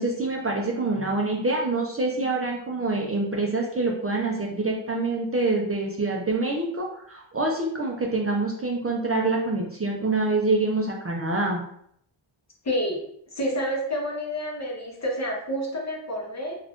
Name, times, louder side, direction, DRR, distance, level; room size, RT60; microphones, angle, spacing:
voice 1, 0.0-11.6, right 2 dB, 30° right, -1 dB, 0.5 m, -26 dB
voice 2, 12.6-13.0 13.4-16.6, equal, 35° left, 0 dB, 0.8 m, -29 dB
2.5 x 2.4 x 3.4 m, 0.67 s
wide cardioid pair, 70°, 50 cm